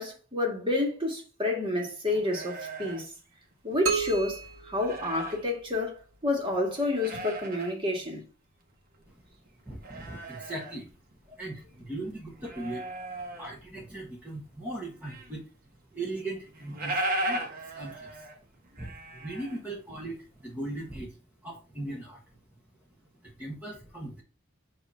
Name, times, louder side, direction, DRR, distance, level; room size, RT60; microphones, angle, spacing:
voice 1, 0.0-3.1 3.6-6.0 6.2-8.2, left 2 dB, 25° right, 1.8 m, -29 dB
sound 1, 2.1-4.0 4.3-5.5 6.0-6.1 6.6-7.7 8.1-8.2 8.6-11.6 11.9-13.8 14.2-15.4 15.7-15.8 16.0-16.1 16.4-20.2 20.5-21.0, right 1 dB, 45° right, 1.3 m, -37 dB
sound 2, 3.9-5.8, right 5 dB, 70° right, 1.3 m, -33 dB
voice 2, 9.6-10.9 11.3-12.9 13.3-15.5 15.9-18.3 18.7-22.4 23.2-24.2, right 2 dB, 10° right, 1.3 m, -39 dB
8.1 x 2.9 x 5.5 m
head